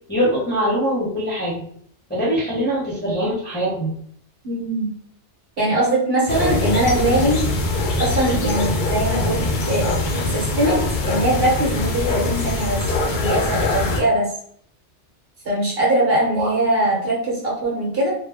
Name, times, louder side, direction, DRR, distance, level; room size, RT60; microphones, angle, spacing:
voice 1, 0.1-1.6 2.1-3.9 16.3-16.5, equal, 10° left, -8 dB, 0.7 m, -22 dB
voice 2, 4.4-4.9 5.6-7.4 8.0-10.8 11.1-14.3 15.4-18.1, right 1 dB, 55° right, -4 dB, 1.1 m, -21 dB
sound 1, 6.3-14.0, left 2 dB, 60° left, 0.5 m, -22 dB
2.3 x 2.2 x 3.3 m, 0.62 s
omnidirectional pair, 1.2 m